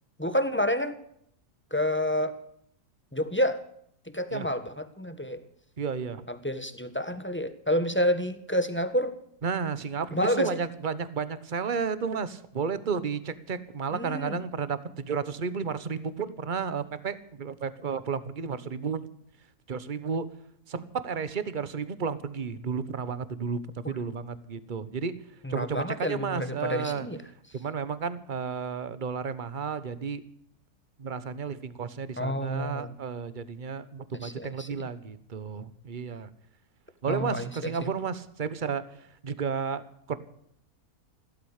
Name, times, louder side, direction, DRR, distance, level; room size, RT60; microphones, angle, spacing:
voice 1, 0.2-1.0 1.7-2.4 3.1-3.6 4.1-5.5 6.3-9.2 10.1-10.6 13.9-14.4 23.8-23.9 25.4-27.2 32.2-32.9 34.2-34.7 37.1-37.9, equal, 10° left, 10 dB, 1.3 m, -29 dB
voice 2, 5.8-6.2 9.4-19.0 19.7-20.2 20.7-25.1 25.5-27.1 27.5-30.2 31.0-36.3 37.0-38.8 39.2-39.8 40.1-40.2, right 6 dB, 35° right, 14 dB, 1.2 m, -32 dB
15.5 x 13.5 x 6.5 m, 0.68 s
omnidirectional pair, 1.7 m